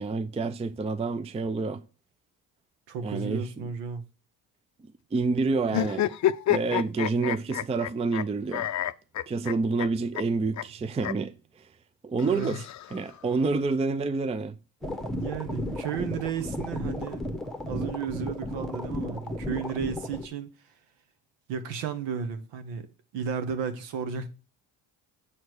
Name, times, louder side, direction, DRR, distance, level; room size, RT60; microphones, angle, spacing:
voice 1, 0.0-1.8 3.0-3.7 5.1-6.1 6.5-8.7 9.3-11.7 12.0-12.6 12.9-14.5, right 4 dB, 15° right, 0.4 m, -28 dB
voice 2, 2.9-4.0 12.2-12.5 15.2-17.2 17.7-20.7 21.5-22.9 23.1-24.3, right 7 dB, 75° right, 1.3 m, -33 dB
sound 1, 5.7-8.2 8.5-9.9 10.1-10.2 10.6-10.7 11.0-11.1 12.2-13.2, left 12 dB, 40° left, 0.6 m, -28 dB
sound 2, 14.8-20.3, left 1 dB, ahead, 1.1 m, -34 dB
7.2 x 4.5 x 4.6 m
supercardioid pair, 65°, 44 cm